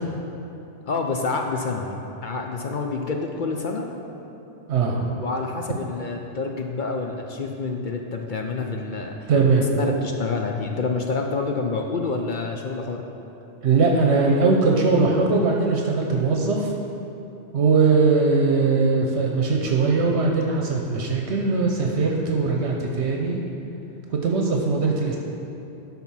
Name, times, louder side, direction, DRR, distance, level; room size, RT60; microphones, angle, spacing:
voice 1, 0.9-3.9 5.2-9.3 9.7-13.0, left 4 dB, 55° left, 2 dB, 0.6 m, -28 dB
voice 2, 4.7-5.2 9.3-9.7 13.6-16.8 17.5-23.4 24.1-25.2, right 4 dB, 65° right, 0 dB, 1.0 m, -20 dB
11.5 x 4.0 x 5.6 m, 2.9 s
omnidirectional pair, 1.2 m